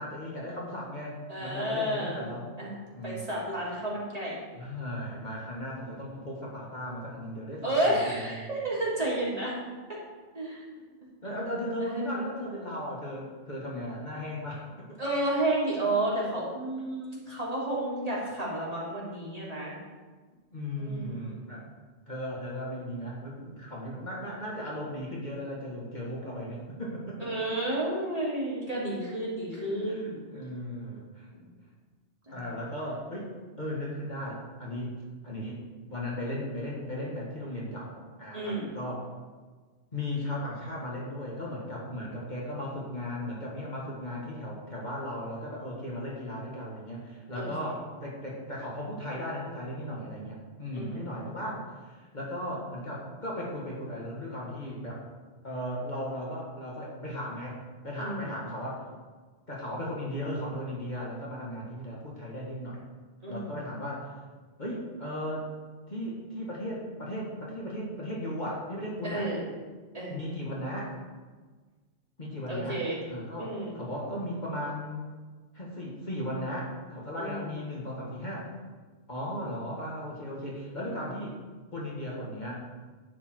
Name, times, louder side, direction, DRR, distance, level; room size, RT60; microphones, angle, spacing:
voice 1, 0.0-2.5 2.9-3.3 4.5-8.5 10.8-10.9 11.2-14.7 20.5-21.6 22.1-27.3 29.5-31.3 32.3-34.9 35.2-39.1 39.9-51.6 51.9-55.0 55.4-57.6 57.8-58.8 59.5-62.8 63.3-64.1 64.6-65.5 65.9-69.3 70.1-70.9 72.2-75.1 75.5-78.5 79.1-81.4 81.7-82.6, equal, 40° left, -4 dB, 2.1 m, -36 dB
voice 2, 1.3-2.2 2.6-2.7 3.0-4.3 7.6-9.5 10.3-10.6 11.8-12.2 15.0-19.8 20.8-21.4 27.2-30.2 31.3-31.5 32.3-32.5 38.3-38.7 47.3-47.5 50.7-51.1 58.0-58.2 63.2-63.6 69.0-69.4 69.9-70.2 72.5-73.0 73.4-73.8 77.2-77.5, right 1 dB, 30° right, -7 dB, 3.4 m, -31 dB
11.0 x 8.8 x 4.6 m, 1.4 s
omnidirectional pair, 1.2 m